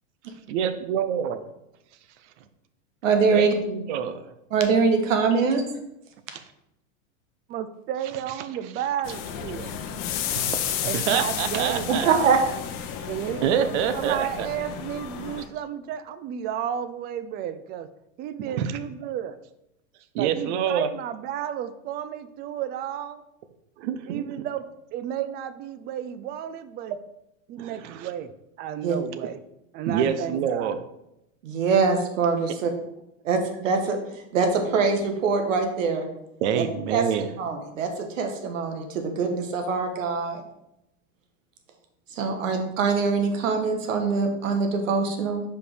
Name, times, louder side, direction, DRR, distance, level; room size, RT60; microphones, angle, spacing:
voice 1, 0.5-1.4 3.3-4.3 10.4-10.6 10.9-12.1 13.4-14.5 18.4-18.8 20.1-20.9 23.8-24.2 27.6-28.1 29.9-30.8 36.4-37.3, right 8 dB, 65° right, 11 dB, 0.8 m, -26 dB
voice 2, 3.0-3.5 4.5-5.6 11.9-12.4 28.8-29.0 30.0-30.1 31.4-32.7 33.2-34.0 34.3-36.1 36.5-36.6 36.9-37.0 37.4-40.4 42.1-45.4, right 5 dB, 80° right, 5 dB, 1.4 m, -23 dB
voice 3, 7.5-9.8 10.8-12.4 13.1-17.9 18.2-19.4 20.2-23.2 24.1-24.7 24.9-27.0 27.5-28.3 28.6-29.4 29.7-30.7, right 10 dB, 25° right, 13 dB, 0.4 m, -32 dB
sound 1, 9.0-15.5, left 9 dB, 45° left, 0.8 m, -32 dB
5.1 x 4.9 x 4.9 m, 0.85 s
hypercardioid pair, 115°, 38 cm